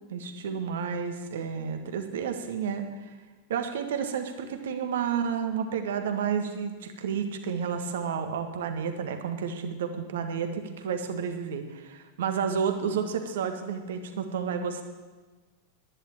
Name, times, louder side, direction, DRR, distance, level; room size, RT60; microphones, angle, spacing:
voice 1, 0.1-3.1 3.5-14.8, right 6 dB, 60° right, 6 dB, 1.6 m, -31 dB
11.0 x 10.5 x 8.9 m, 1.3 s
figure-of-eight pair, 90°, 0 cm